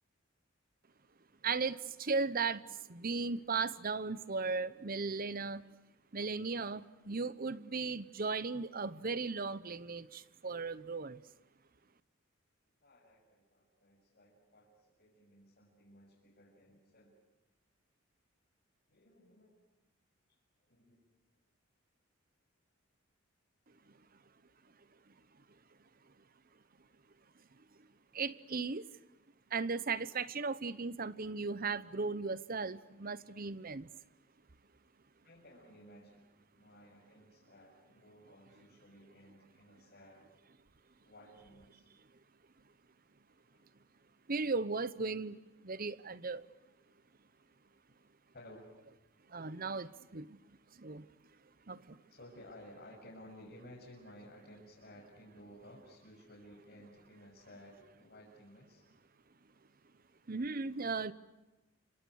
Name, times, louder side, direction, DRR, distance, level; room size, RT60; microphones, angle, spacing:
voice 1, 1.4-5.6 6.1-11.2 28.1-28.9 29.5-33.9 44.3-46.5 49.3-50.4 50.7-51.1 51.7-52.0 60.3-61.1, right 4 dB, 45° right, 16 dB, 0.9 m, -36 dB
voice 2, 12.8-17.2 18.9-19.6 20.3-21.0 35.2-36.2 36.6-40.3 41.0-41.9 43.5-43.7 48.3-48.6 52.1-58.8, equal, 50° left, -4 dB, 7.0 m, -56 dB
29.5 x 26.0 x 6.5 m, 1.1 s
head